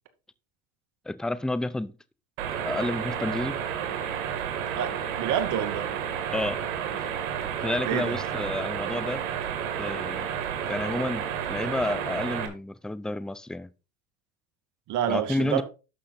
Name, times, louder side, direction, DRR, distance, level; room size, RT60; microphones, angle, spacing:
voice 1, 1.1-1.9 2.6-3.6 6.3-6.6 6.9-7.1 7.6-9.2 9.8-10.3 10.7-13.7 15.1-15.6, left 2 dB, ahead, 0.4 m, -30 dB
sound 1, 2.4-12.5, right 8 dB, 85° right, 2.6 m, -31 dB
voice 2, 4.8-5.9 7.8-8.2 14.9-15.6, right 9 dB, 45° right, 2.2 m, -28 dB
11.5 x 6.3 x 4.1 m
supercardioid pair, 125°, 40 cm